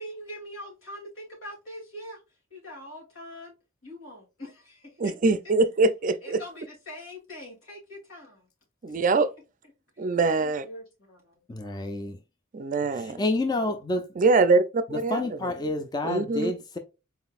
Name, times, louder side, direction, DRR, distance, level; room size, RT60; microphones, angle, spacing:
voice 1, 0.0-2.2 2.5-3.5 3.8-5.1 6.2-8.5 9.0-9.1 10.4-11.4 13.1-13.3, equal, 80° left, 2.6 m, -43 dB
voice 2, 5.0-6.4 8.8-9.3 10.0-10.6 12.5-13.2 14.2-15.5 16.0-16.5, right 3 dB, 40° right, 0.4 m, -23 dB
voice 3, 11.5-12.2 13.0-14.1 15.1-16.8, left 2 dB, 20° left, 0.4 m, -29 dB
4.2 x 3.8 x 2.4 m
head